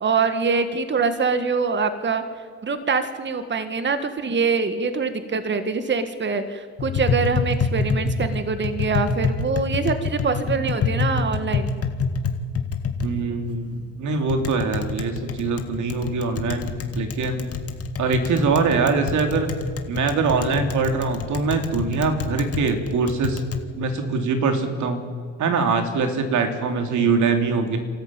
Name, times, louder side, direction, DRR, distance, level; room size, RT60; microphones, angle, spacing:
voice 1, 0.0-2.2 2.6-11.7, right 5 dB, 40° right, 9 dB, 1.8 m, -24 dB
Tap, 6.8-23.6, left 4 dB, 50° left, 2.2 m, -27 dB
voice 2, 13.0-17.5 18.0-19.5 19.9-23.4 23.8-25.0 25.4-27.8, right 4 dB, 75° right, 6 dB, 3.1 m, -23 dB
29.0 x 13.5 x 9.1 m, 2.1 s
cardioid pair, 90°, 30 cm